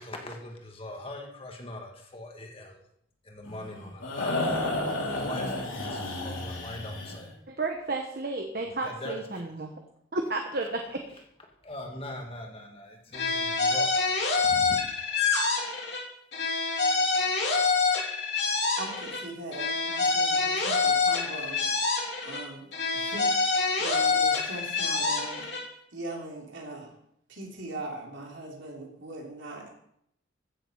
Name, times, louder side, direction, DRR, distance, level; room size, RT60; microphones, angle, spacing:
voice 1, 0.0-2.8 3.2-4.3 5.0-7.3 8.8-9.4 11.6-14.0 14.4-14.8, left 1 dB, 30° left, 2 dB, 1.9 m, -41 dB
sound 1, 3.4-7.3, left 2 dB, 80° left, 3.8 m, -32 dB
voice 2, 7.5-9.7 10.1-11.0, right 2 dB, 50° right, 4 dB, 1.1 m, -32 dB
sound 2, 13.1-16.0 16.3-19.2 19.5-22.4 22.7-25.6, left 4 dB, 55° left, 3.3 m, -26 dB
voice 3, 18.8-21.7 22.2-25.5 25.9-26.9 27.3-29.7, right 2 dB, 65° right, -1 dB, 3.7 m, -40 dB
15.0 x 7.5 x 5.6 m, 0.74 s
head